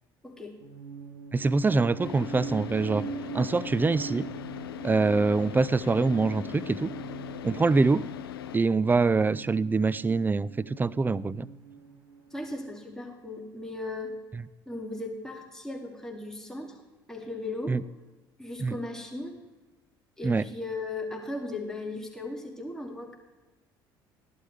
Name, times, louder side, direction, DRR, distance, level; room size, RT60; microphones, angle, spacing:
voice 1, 0.2-0.5 12.3-14.2 14.7-16.8 17.1-17.8 18.4-19.4 20.2-23.2, left 2 dB, 5° left, -1 dB, 2.6 m, -37 dB
sound 1, 0.6-12.6, right 5 dB, 80° right, 3.2 m, -42 dB
voice 2, 1.3-3.1 3.3-4.3 4.8-6.9 7.4-8.1 8.5-11.5 17.7-17.8 18.6-18.8 20.2-20.4, right 4 dB, 15° right, 19 dB, 0.4 m, -24 dB
Car / Idling, 2.0-8.6, left 11 dB, 90° left, 0.4 m, -40 dB
14.5 x 11.5 x 3.4 m, 1.1 s
hypercardioid pair, 65°, 12 cm